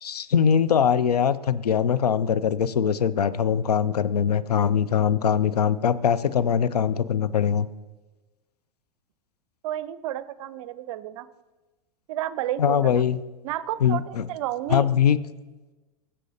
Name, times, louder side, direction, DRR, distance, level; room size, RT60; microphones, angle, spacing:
voice 1, 0.0-7.7 12.6-13.2 13.8-14.2 14.7-15.2, left 8 dB, 85° left, 15 dB, 0.4 m, -22 dB
voice 2, 9.6-11.3 12.1-13.0 13.4-14.9, right 13 dB, 55° right, 16 dB, 0.5 m, -31 dB
17.5 x 7.5 x 2.7 m, 1.2 s
hypercardioid pair, 100°, 20 cm